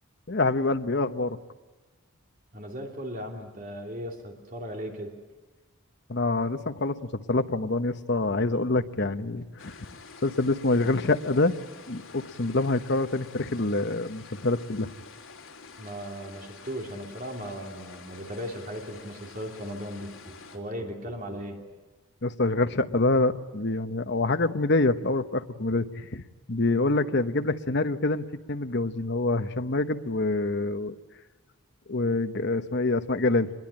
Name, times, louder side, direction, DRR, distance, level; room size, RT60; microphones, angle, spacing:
voice 1, 0.3-1.4 6.1-7.0 7.3-9.7 10.2-11.5 11.9-14.9 22.2-26.2 26.5-30.9 31.9-33.5, left 2 dB, 55° left, 10 dB, 1.0 m, -26 dB
voice 2, 2.5-5.1 15.8-21.6, equal, 40° right, 2 dB, 2.9 m, -37 dB
sound 1, 9.6-20.6, left 4 dB, 70° left, 3.5 m, -48 dB
26.0 x 21.5 x 8.8 m, 1.2 s
head